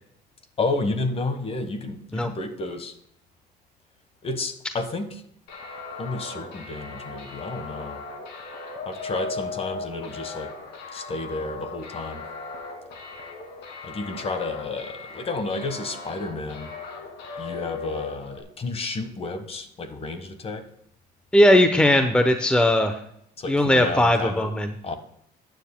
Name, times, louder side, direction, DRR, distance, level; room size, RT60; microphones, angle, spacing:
voice 1, 0.6-2.9 4.2-5.2 6.0-8.0 8.9-10.5 10.9-12.2 13.8-16.7 17.4-20.6 23.4-24.5 24.8-24.9, left 3 dB, 35° left, 9 dB, 1.4 m, -31 dB
sound 1, 5.5-18.4, left 4 dB, 85° left, 2.5 m, -37 dB
voice 2, 21.3-23.0 23.5-24.7, left 1 dB, 5° left, 7 dB, 0.8 m, -18 dB
15.0 x 9.4 x 2.2 m, 0.70 s
cardioid pair, 110°, 17 cm